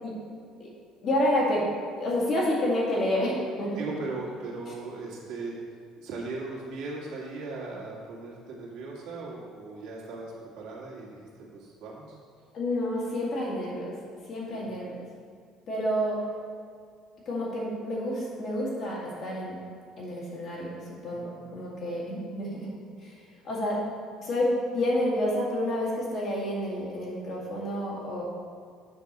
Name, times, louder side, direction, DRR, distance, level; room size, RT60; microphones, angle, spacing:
voice 1, 1.0-1.6 2.0-3.8 12.5-13.9 14.3-14.9 15.7-16.2 17.3-19.6 20.0-20.7 21.0-22.7 23.0-23.1 23.4-23.8 24.2-28.2, left 1 dB, 35° left, -5 dB, 2.1 m, -29 dB
voice 2, 3.8-5.6 6.0-12.1 14.5-14.7 21.0-21.7, right 3 dB, 65° right, -4 dB, 2.0 m, -38 dB
7.5 x 4.5 x 6.7 m, 2.2 s
cardioid pair, 175°, 0 cm